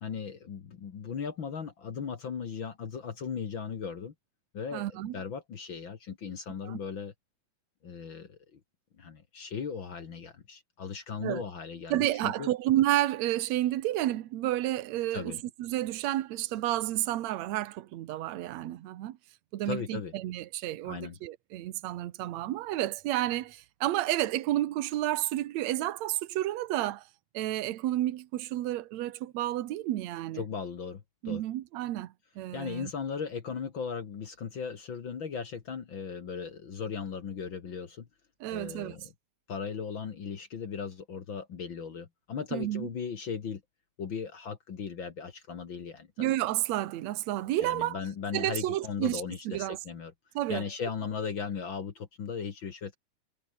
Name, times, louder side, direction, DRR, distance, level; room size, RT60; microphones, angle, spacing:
voice 1, 0.0-4.1 4.5-7.1 7.8-8.6 9.0-12.5 15.1-15.4 19.6-20.1 20.8-21.2 30.3-31.4 32.5-38.1 38.5-39.1 39.5-43.6 44.0-46.3 47.6-50.1 50.5-53.0, left 6 dB, 50° left, 1.5 m, -37 dB
voice 2, 4.7-5.2 6.6-6.8 11.2-11.5 11.9-19.2 19.5-27.0 27.3-30.4 31.2-32.9 38.4-38.9 42.5-42.9 46.2-48.0 48.3-49.8 50.4-50.7, right 14 dB, 75° right, 1.6 m, -31 dB
omnidirectional pair, 4.6 m